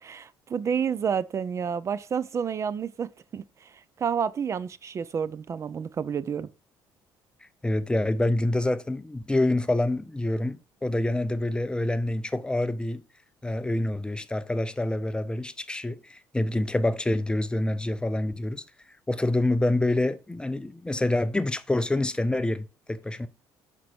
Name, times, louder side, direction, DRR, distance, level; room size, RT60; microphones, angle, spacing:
voice 1, 0.0-3.7 4.0-6.5, right 7 dB, 40° right, 0.4 m, -30 dB
voice 2, 7.6-13.0 13.4-18.6 19.1-23.3, left 1 dB, 10° left, 0.6 m, -27 dB
6.1 x 4.5 x 4.3 m
supercardioid pair, 85°, 8 cm